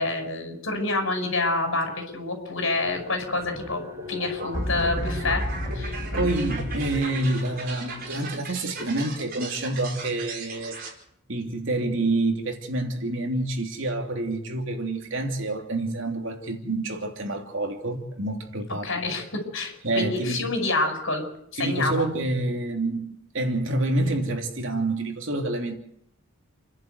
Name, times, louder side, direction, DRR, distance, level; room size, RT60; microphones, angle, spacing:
voice 1, 0.0-3.8 4.1-5.4 5.7-6.3 18.8-21.3 21.5-22.0, left 2 dB, 65° left, 5.9 m, -27 dB
sound 1, 2.7-8.1, left 1 dB, 15° right, 4.5 m, -33 dB
sound 2, 4.0-10.9, right 3 dB, 40° right, 4.8 m, -38 dB
voice 2, 6.1-10.8 11.3-19.1 19.8-20.4 21.6-23.1 23.3-25.8, right 2 dB, 60° right, 3.0 m, -27 dB
29.0 x 11.0 x 8.2 m
head